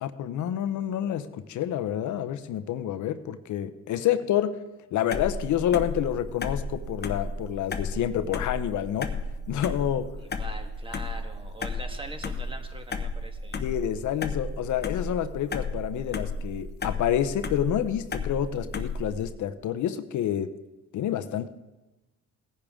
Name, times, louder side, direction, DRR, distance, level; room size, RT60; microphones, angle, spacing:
voice 1, 0.0-4.6 4.9-9.1 9.5-10.1 13.6-20.5 20.9-21.5, left 10 dB, 75° left, 11 dB, 0.8 m, -28 dB
sound 1, 5.1-19.3, left 3 dB, 35° left, 1.0 m, -33 dB
voice 2, 10.2-13.6, right 1 dB, 15° right, 5 dB, 1.6 m, -42 dB
18.0 x 10.0 x 3.7 m, 1.1 s
cardioid pair, 90°, 30 cm